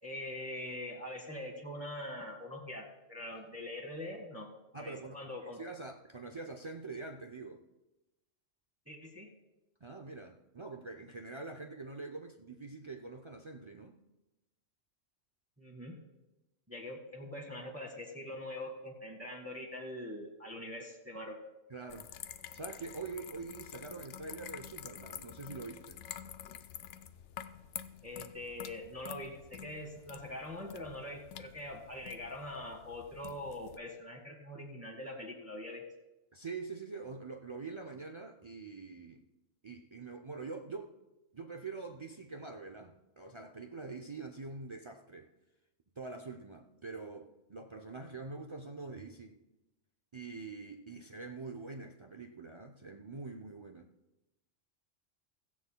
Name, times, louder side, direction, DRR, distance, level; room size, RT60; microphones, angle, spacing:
voice 1, 0.0-4.5 4.7-5.6 8.9-9.3 15.6-16.0 16.7-21.4 28.0-35.8, left 1 dB, 10° right, 1.4 m, -43 dB
voice 2, 4.7-7.6 9.8-14.0 21.7-22.1 22.5-26.0 36.3-39.2 39.6-41.0 41.3-45.3 46.0-49.4 50.1-53.9, right 3 dB, 45° right, 0.4 m, -45 dB
sound 1, 21.9-33.8, left 9 dB, 70° left, 0.8 m, -48 dB
16.5 x 14.5 x 2.2 m
omnidirectional pair, 1.3 m